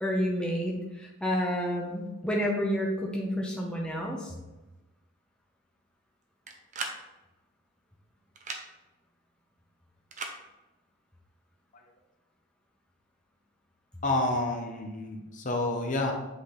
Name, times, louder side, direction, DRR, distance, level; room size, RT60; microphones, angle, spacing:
voice 1, 0.0-4.3, equal, 5° left, -2 dB, 0.7 m, -30 dB
sound 1, 6.5-7.0 8.4-8.6 10.1-10.4, right 3 dB, 35° right, 0.6 m, -36 dB
voice 2, 14.0-16.1, left 2 dB, 35° left, 2 dB, 0.8 m, -29 dB
8.1 x 4.0 x 3.4 m, 1.0 s
head